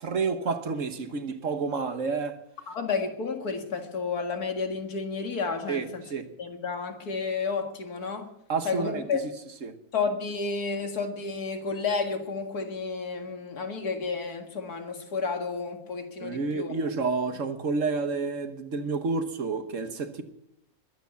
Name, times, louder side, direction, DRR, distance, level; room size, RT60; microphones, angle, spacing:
voice 1, 0.0-2.4 5.7-6.3 8.5-9.2 9.6-9.7 16.2-20.2, right 4 dB, 60° right, 1.6 m, -30 dB
voice 2, 2.7-6.0 6.4-8.3 8.6-9.2 9.9-16.7, left 4 dB, 85° left, 2.5 m, -31 dB
21.5 x 9.0 x 6.9 m
omnidirectional pair, 1.6 m